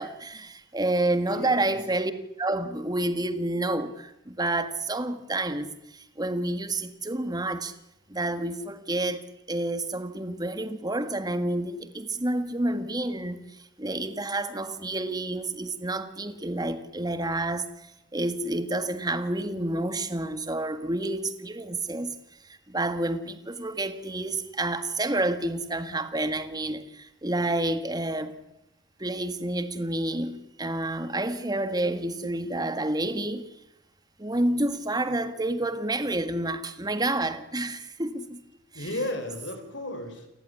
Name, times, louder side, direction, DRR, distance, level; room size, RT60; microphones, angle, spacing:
voice 1, 0.0-2.1 2.4-7.7 8.1-9.2 9.5-22.2 22.7-28.3 29.0-33.5 34.2-38.4 38.7-39.1, right 2 dB, 20° right, 1.8 m, -29 dB
voice 2, 1.3-1.8 38.7-40.3, left 1 dB, 65° left, 5.1 m, -34 dB
29.0 x 15.0 x 9.9 m
head